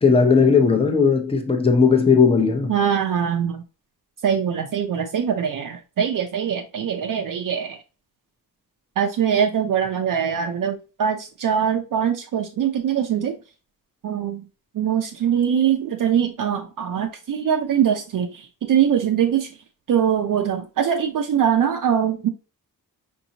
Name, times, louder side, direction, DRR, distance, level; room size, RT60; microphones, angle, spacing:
voice 1, 0.0-2.7, left 5 dB, 15° left, 0.7 m, -17 dB
voice 2, 2.7-3.6 4.2-7.8 9.0-13.4 14.0-14.4 14.7-19.5 19.9-22.3, right 8 dB, 60° right, 0.5 m, -22 dB
5.2 x 2.7 x 2.8 m
wide cardioid pair, 115°, 37 cm